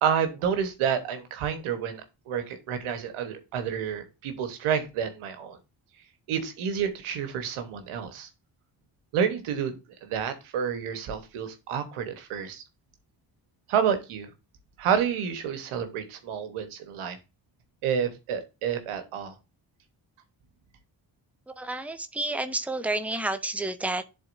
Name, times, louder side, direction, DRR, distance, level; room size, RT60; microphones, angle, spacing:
voice 1, 0.0-5.6 6.3-8.3 9.1-9.7 10.0-12.6 13.7-14.3 14.8-17.2 17.8-19.4, right 7 dB, 85° right, 1.3 m, -29 dB
voice 2, 21.5-24.0, right 2 dB, 5° right, 0.9 m, -30 dB
10.5 x 4.0 x 2.6 m
supercardioid pair, 45°, 49 cm